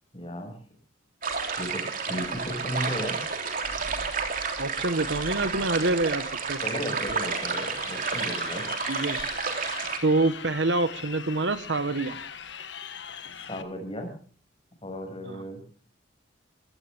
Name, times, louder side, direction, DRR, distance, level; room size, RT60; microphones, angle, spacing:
voice 1, 0.1-0.5 1.6-3.2 6.6-8.6 13.5-14.1 14.8-15.6, equal, 30° left, 4 dB, 6.4 m, -35 dB
sound 1, 1.2-10.0, right 5 dB, 50° right, 3.2 m, -31 dB
sound 2, 3.2-12.5, equal, ahead, 2.9 m, -49 dB
voice 2, 4.6-6.6 8.9-9.2 10.0-12.2 15.2-15.4, right 2 dB, 70° right, 12 dB, 1.4 m, -26 dB
Crowd, 7.1-13.6, left 7 dB, 70° left, 1.5 m, -41 dB
23.5 x 16.0 x 3.5 m, 0.43 s
head